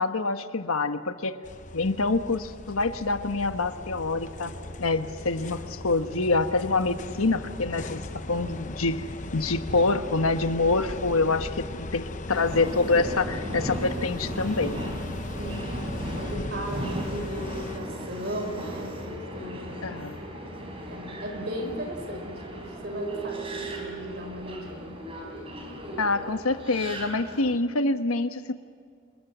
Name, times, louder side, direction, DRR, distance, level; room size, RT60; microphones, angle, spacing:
voice 1, 0.0-1.4 1.7-4.5 4.8-8.0 8.3-9.0 9.3-14.8 19.8-20.2 26.0-28.5, left 3 dB, 90° left, 9 dB, 1.2 m, -26 dB
sound 1, 1.4-17.8, left 2 dB, 35° left, 0.8 m, -38 dB
sound 2, 3.5-8.6, left 1 dB, 60° left, 6.2 m, -47 dB
Subway metro underground, 12.3-27.5, right 1 dB, 25° right, 4.1 m, -37 dB
voice 2, 15.4-20.4 20.9-25.0, equal, 50° right, 3 dB, 5.2 m, -37 dB
27.0 x 22.0 x 6.2 m, 2.3 s
head